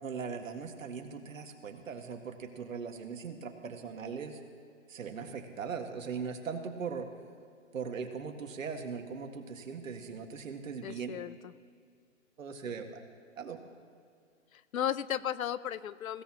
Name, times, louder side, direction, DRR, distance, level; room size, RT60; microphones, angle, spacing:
voice 1, 0.0-4.4 4.9-7.1 7.7-11.1 12.4-13.0 13.4-13.6, right 6 dB, 75° right, 4 dB, 1.9 m, -39 dB
voice 2, 10.8-11.5 12.7-12.8 14.5-16.2, left 10 dB, 90° left, 17 dB, 0.7 m, -35 dB
21.5 x 16.5 x 3.0 m, 2.3 s
hypercardioid pair, 175°, 40 cm